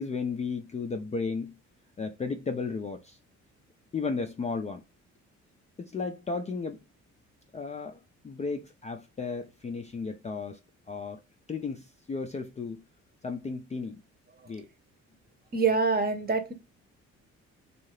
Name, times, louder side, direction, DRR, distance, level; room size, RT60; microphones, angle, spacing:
voice 1, 0.0-1.6 2.0-3.2 3.9-4.8 5.8-6.8 7.5-10.6 10.9-11.2 11.5-12.8 13.2-14.0 14.5-14.7, left 4 dB, 25° left, 0.4 m, -34 dB
voice 2, 15.5-16.5, right 4 dB, 30° right, 0.8 m, -25 dB
2.7 x 2.4 x 3.1 m
cardioid pair, 90°, 30 cm